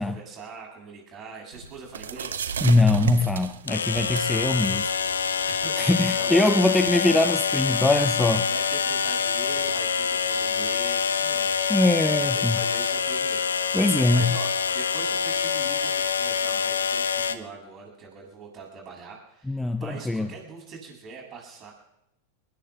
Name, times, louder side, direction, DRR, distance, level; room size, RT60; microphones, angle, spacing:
voice 1, 0.0-2.5 5.3-7.1 8.3-11.6 12.2-21.7, right 4 dB, 35° right, 0 dB, 8.0 m, -43 dB
sound 1, 1.5-13.4, right 7 dB, 75° right, 0.9 m, -39 dB
sound 2, 1.6-1.7 3.7-17.4, left 6 dB, 80° left, 0.8 m, -26 dB
voice 2, 2.6-4.9 5.8-8.5 11.7-12.6 13.7-14.4 19.5-20.3, left 2 dB, 5° left, 10 dB, 0.7 m, -22 dB
25.5 x 21.0 x 2.4 m, 0.84 s
figure-of-eight pair, 95°, 0 cm